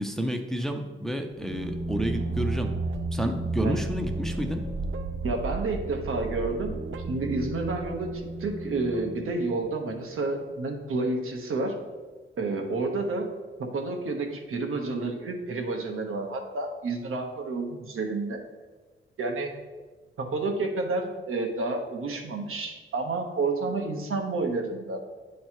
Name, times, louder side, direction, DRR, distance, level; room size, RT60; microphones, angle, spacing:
voice 1, 0.0-2.7 3.1-4.6, equal, ahead, 4 dB, 0.5 m, -30 dB
sound 1, 1.3-9.9, right 2 dB, 70° right, 0.6 m, -33 dB
voice 2, 5.2-6.8 7.1-11.8 12.4-13.3 13.6-18.4 19.2-19.5 20.2-25.0, right 3 dB, 85° right, 3 dB, 1.0 m, -30 dB
9.5 x 3.2 x 4.4 m, 1.4 s
wide cardioid pair, 120°, 21 cm